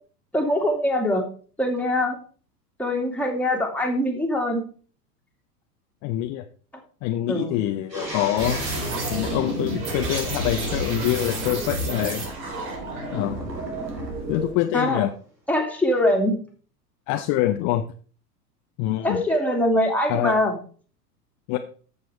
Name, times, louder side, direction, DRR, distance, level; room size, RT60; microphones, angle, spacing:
voice 1, 0.3-1.2 1.6-2.2 2.8-4.6 7.3-7.6 14.7-15.1 15.5-16.4 19.0-20.6, left 1 dB, 5° left, 0 dB, 2.5 m, -23 dB
voice 2, 6.0-6.4 7.0-12.2 13.1-13.5 14.3-15.1 17.1-17.9 18.8-19.2 20.1-20.4 21.5-21.6, left 14 dB, 35° left, 7 dB, 0.8 m, -25 dB
sound 1, 7.9-10.6 13.0-14.5, right 1 dB, 90° right, 3.1 m, -38 dB
sound 2, 8.4-14.5, right 2 dB, 55° right, 3.8 m, -30 dB
13.5 x 6.9 x 3.5 m, 0.42 s
figure-of-eight pair, 95°, 48 cm